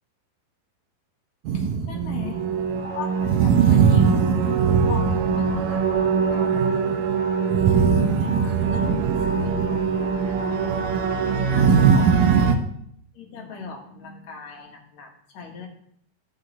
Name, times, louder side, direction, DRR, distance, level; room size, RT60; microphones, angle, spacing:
voice 1, 1.5-2.4 2.8-4.3 4.8-6.9 8.0-10.9 11.3-12.2 13.1-15.7, left 5 dB, 55° left, 1 dB, 2.2 m, -37 dB
sound 1, 1.5-12.5, right 6 dB, 75° right, 2.0 m, -20 dB
16.0 x 5.3 x 4.0 m, 0.68 s
omnidirectional pair, 4.7 m